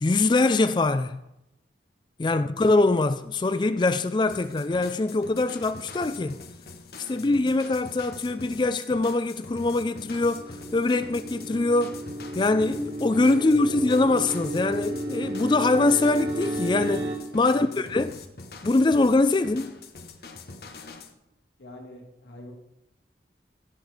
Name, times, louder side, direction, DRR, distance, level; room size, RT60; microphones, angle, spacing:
voice 1, 0.0-1.2 2.2-6.4 7.1-12.0 12.3-18.2 18.6-19.8, left 2 dB, 25° left, 0.3 m, -23 dB
voice 2, 2.2-2.7 7.1-7.4 13.4-13.9 17.4-17.9 21.6-22.5, left 1 dB, 80° left, 2.0 m, -45 dB
sound 1, 4.3-21.1, left 3 dB, 60° left, 1.1 m, -44 dB
sound 2, 9.8-17.2, right 1 dB, 65° right, 1.9 m, -33 dB
16.5 x 6.7 x 4.9 m
head